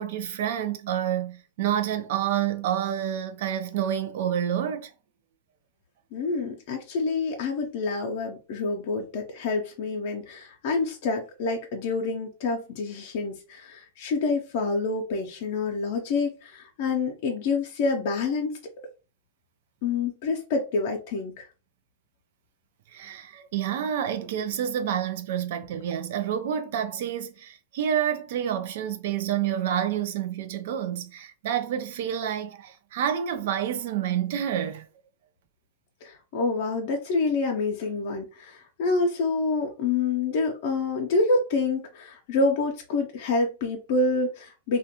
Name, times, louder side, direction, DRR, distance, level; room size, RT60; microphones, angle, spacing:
voice 1, 0.0-4.9 22.9-34.9, right 10 dB, 65° right, 0.4 m, -28 dB
voice 2, 6.1-18.6 19.8-21.5 36.0-44.8, left 3 dB, 60° left, 0.5 m, -27 dB
2.4 x 2.2 x 2.8 m
hypercardioid pair, 115°, 0 cm